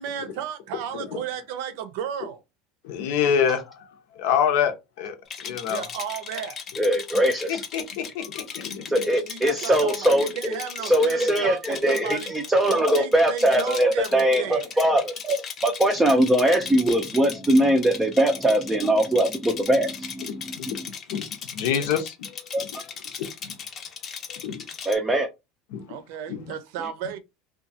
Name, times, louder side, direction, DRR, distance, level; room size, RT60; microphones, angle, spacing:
voice 1, 0.0-2.4 5.7-6.6 9.2-12.3 12.7-14.6 25.9-27.2, right 8 dB, 70° right, 0.5 m, -34 dB
voice 2, 2.8-3.9 4.2-5.2 5.4-5.8 7.5-8.8 20.2-20.8 21.1-21.2 21.5-22.4 22.7-22.8 23.2-23.5 24.3-24.6 25.7-25.8 26.3-26.4, left 8 dB, 75° left, 0.7 m, -26 dB
Rattle, 5.3-25.0, left 7 dB, 35° left, 0.6 m, -37 dB
voice 3, 6.8-7.6 8.6-10.6 10.8-15.4 15.6-20.9 22.5-22.6 24.9-25.3, right 1 dB, 10° right, 0.4 m, -21 dB
2.8 x 2.3 x 2.7 m
supercardioid pair, 140°, 0 cm